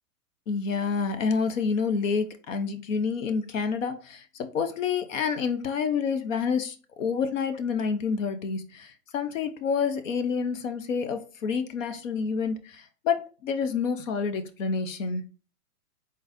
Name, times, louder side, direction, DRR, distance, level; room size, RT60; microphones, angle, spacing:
voice 1, 0.5-15.2, left 5 dB, 55° left, 9 dB, 0.8 m, -28 dB
3.9 x 3.9 x 2.5 m, 0.36 s
hypercardioid pair, 150°, 45 cm